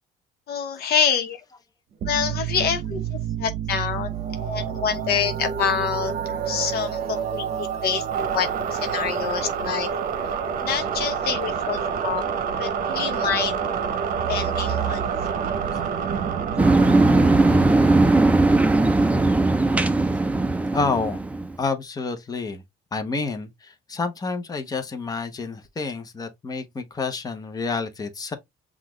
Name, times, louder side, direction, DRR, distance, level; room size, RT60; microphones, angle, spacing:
voice 1, 0.5-1.4 2.0-4.1 4.4-9.9 10.6-12.2 12.6-13.6 14.3-15.0, left 7 dB, 70° left, 1.0 m, -27 dB
sound 1, 2.0-20.5, right 7 dB, 55° right, 0.8 m, -28 dB
sound 2, 16.6-21.6, right 2 dB, 10° right, 0.5 m, -18 dB
voice 2, 20.7-21.2 21.6-22.6 22.9-28.3, left 4 dB, 20° left, 0.9 m, -29 dB
5.7 x 2.4 x 3.1 m
cardioid pair, 110°, 17 cm